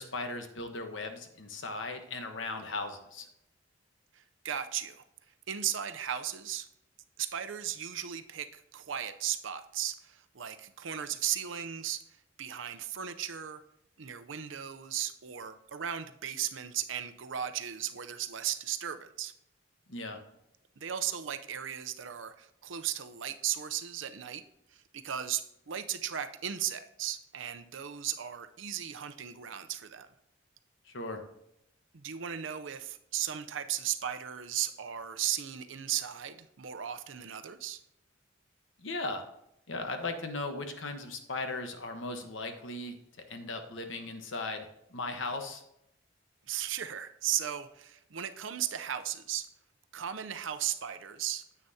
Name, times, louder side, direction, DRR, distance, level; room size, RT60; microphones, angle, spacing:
voice 1, 0.0-3.3 19.9-20.2 30.8-31.2 38.8-39.3 39.7-43.0 43.3-45.6, left 3 dB, 75° left, 6 dB, 1.2 m, -37 dB
voice 2, 4.1-5.0 5.5-6.7 7.2-12.0 12.4-13.6 14.0-19.3 20.8-24.4 24.7-30.1 31.9-37.8 46.5-49.5 49.9-51.4, right 10 dB, 75° right, 10 dB, 0.6 m, -36 dB
9.8 x 8.4 x 2.8 m, 0.79 s
head